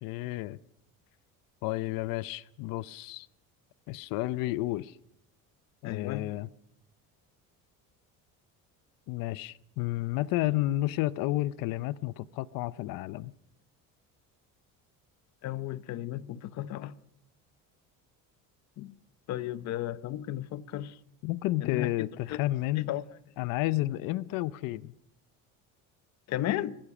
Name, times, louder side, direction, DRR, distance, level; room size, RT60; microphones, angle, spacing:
voice 1, 0.0-0.6 1.6-3.3 3.9-5.0 5.8-6.5 9.1-13.3 21.2-22.9 23.4-24.9, left 17 dB, 80° left, 0.7 m, -31 dB
voice 2, 5.8-6.3 15.4-16.9 18.8-18.9 19.3-21.0 21.6-21.9 22.3-22.4 22.9-23.0 26.3-26.8, left 13 dB, 55° left, 0.9 m, -34 dB
23.0 x 20.0 x 6.1 m
cardioid pair, 165°, 33 cm